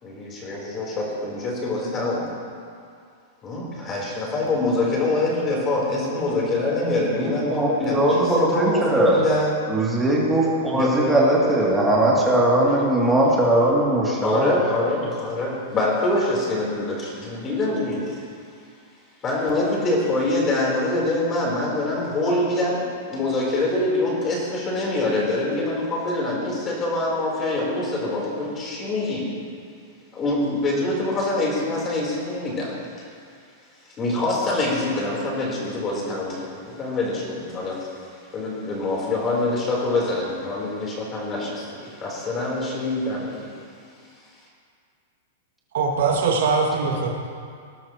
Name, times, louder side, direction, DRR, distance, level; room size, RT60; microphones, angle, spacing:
voice 1, 0.0-2.3 3.4-9.5 10.7-10.9 14.2-18.2 19.2-29.3 30.1-32.7 34.0-37.9 38.3-43.5, left 2 dB, 25° left, -3 dB, 3.9 m, -25 dB
voice 2, 7.2-9.2 9.7-14.6, right 1 dB, 5° right, -5 dB, 2.8 m, -20 dB
voice 3, 45.7-47.2, right 4 dB, 75° right, 0 dB, 2.3 m, -21 dB
19.5 x 12.0 x 3.1 m, 2.3 s
supercardioid pair, 150°, 0 cm